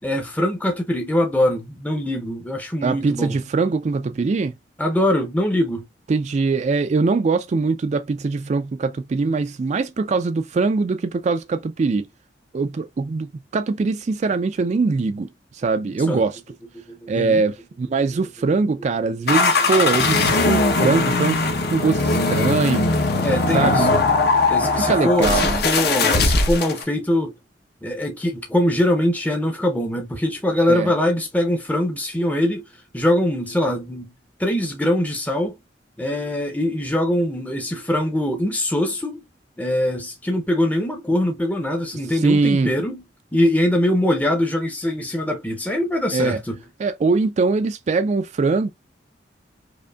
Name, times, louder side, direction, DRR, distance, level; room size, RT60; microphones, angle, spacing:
voice 1, 0.0-3.4 4.8-5.8 16.1-16.2 16.9-17.4 23.2-24.0 24.5-27.4 27.8-32.7 32.9-34.1 34.4-35.6 36.0-39.2 39.6-43.0 43.3-46.6, left 1 dB, 10° left, 0.6 m, -22 dB
voice 2, 2.8-4.5 6.1-12.1 12.5-16.4 17.1-21.4 21.7-22.9 23.5-24.1 24.6-25.6 30.6-30.9 42.1-42.7 46.1-46.4 46.8-48.7, right 4 dB, 40° right, 0.3 m, -22 dB
sound 1, 19.3-26.8, left 3 dB, 60° left, 0.9 m, -20 dB
5.0 x 2.6 x 2.3 m
head